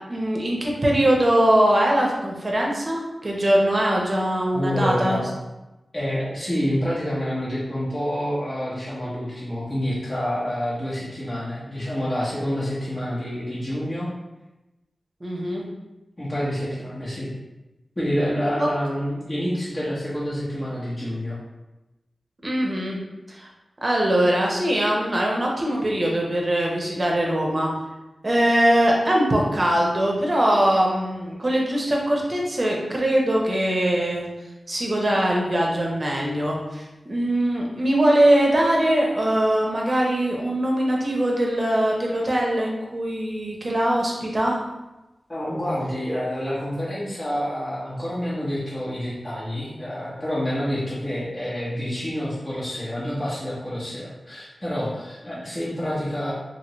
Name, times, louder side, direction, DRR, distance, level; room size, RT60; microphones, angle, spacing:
voice 1, 0.1-5.2 15.2-15.6 18.6-18.7 22.4-23.0 23.3-23.5 23.8-27.7 28.2-34.3 34.7-44.6 55.3-55.4, right 1 dB, 40° right, -2 dB, 0.8 m, -22 dB
voice 2, 4.5-5.3 5.9-14.1 16.2-17.3 18.0-21.4 45.3-56.3, equal, 25° left, -9 dB, 0.9 m, -28 dB
2.9 x 2.8 x 2.9 m, 1.0 s
wide cardioid pair, 65°, 0 cm